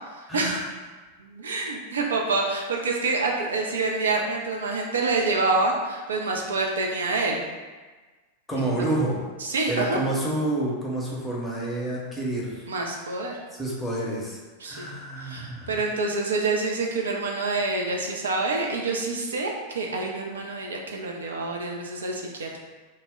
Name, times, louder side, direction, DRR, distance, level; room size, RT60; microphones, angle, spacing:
voice 1, 0.3-0.6 8.5-9.2 9.7-12.6 13.6-14.4 14.6-15.8, right 1 dB, 10° left, -5 dB, 0.7 m, -28 dB
voice 2, 1.2-7.4 8.6-8.9 9.4-10.0 12.7-13.4 14.6-14.9 15.2-22.6, right 3 dB, 70° right, 0 dB, 0.3 m, -27 dB
2.1 x 2.0 x 3.4 m, 1.3 s
figure-of-eight pair, 90°, 0 cm